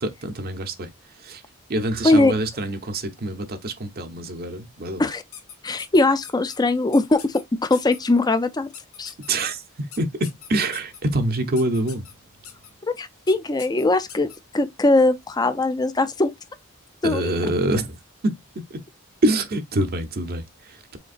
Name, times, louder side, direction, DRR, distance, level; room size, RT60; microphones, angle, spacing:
voice 1, 0.0-0.9 1.2-1.4 1.7-5.1 9.3-9.6 10.0-12.1 17.0-18.0 18.2-18.8 19.2-21.0, right 1 dB, 45° right, 0.7 m, -25 dB
sound 1, 5.3-6.6 6.9-7.4 7.7-8.0 8.7-9.3 9.9-11.0 11.6-12.1 12.4-12.7 13.3-13.4 13.6-14.4, left 8 dB, 85° left, 1.4 m, -41 dB
voice 2, 5.6-8.7 9.0-9.1 13.0-14.3 14.5-16.3 17.0-17.4, left 2 dB, 20° left, 0.5 m, -20 dB
5.1 x 3.8 x 2.5 m
head